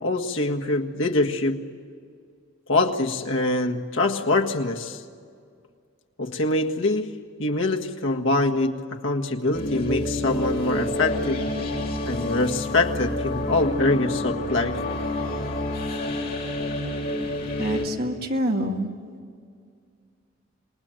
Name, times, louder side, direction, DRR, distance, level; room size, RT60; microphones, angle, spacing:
voice 1, 0.0-1.6 2.7-5.0 6.2-11.4 12.0-14.8, left 2 dB, 75° left, 2 dB, 1.7 m, -24 dB
sound 1, 9.5-17.9, left 1 dB, 50° left, 3.6 m, -28 dB
voice 2, 17.6-18.9, equal, 50° right, 2 dB, 2.2 m, -26 dB
28.0 x 20.0 x 9.0 m, 2.2 s
head